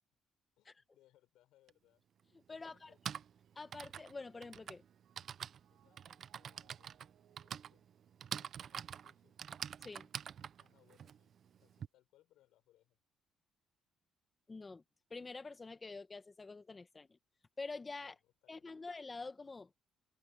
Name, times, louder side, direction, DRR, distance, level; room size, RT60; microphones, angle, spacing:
voice 1, 0.6-2.0 2.5-3.0 5.7-7.8 8.3-9.3 10.6-13.0 18.0-18.9, left 14 dB, 85° left, 6.1 m, -72 dB
Typing, 1.7-1.8 2.7-11.9, right 8 dB, 55° right, 0.7 m, -46 dB
voice 2, 2.5-2.9 3.5-4.8 9.8-10.1 14.5-14.8 15.1-17.2 17.6-18.1 18.5-19.7, left 3 dB, 25° left, 1.3 m, -47 dB
Mallet percussion, 2.9-9.2, right 12 dB, 75° right, 5.6 m, -75 dB
cardioid pair, 110°, 0 cm